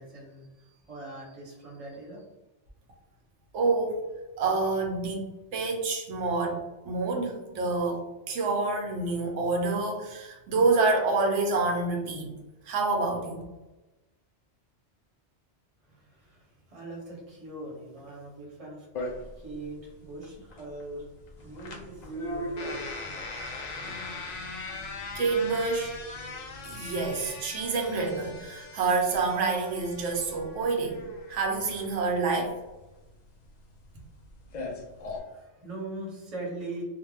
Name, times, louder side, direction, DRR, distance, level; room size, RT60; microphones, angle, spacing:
voice 1, 0.0-2.2 15.8-18.9 19.2-21.1 21.4-23.3 35.0-36.8, right 2 dB, 35° right, -3 dB, 0.8 m, -42 dB
voice 2, 3.5-4.0 4.4-5.2 5.5-12.3 12.7-13.4 25.2-26.0 26.7-32.6, right 3 dB, 85° right, 1 dB, 0.9 m, -27 dB
sound 1, 18.9-35.2, left 3 dB, 60° left, 0.4 m, -41 dB
sound 2, 21.4-27.4, right 1 dB, ahead, 0.8 m, -42 dB
2.5 x 2.1 x 3.1 m, 1.1 s
omnidirectional pair, 1.2 m